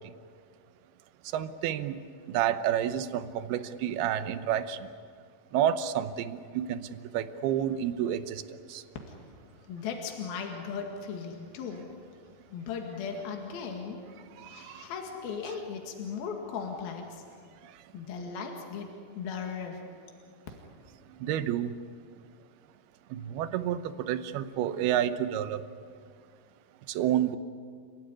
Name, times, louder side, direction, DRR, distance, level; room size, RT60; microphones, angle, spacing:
voice 1, 1.3-2.0 2.3-4.8 5.5-6.8 7.1-8.4 8.7-8.8 21.2-21.7 23.1-23.8 24.1-25.6 27.0-27.4, right 10 dB, 85° right, 11 dB, 2.9 m, -29 dB
voice 2, 9.7-11.9 12.5-14.0 14.5-17.2 17.9-18.9 19.2-19.8, left 6 dB, 75° left, 2 dB, 3.9 m, -37 dB
30.0 x 18.0 x 9.8 m, 2.2 s
omnidirectional pair, 4.4 m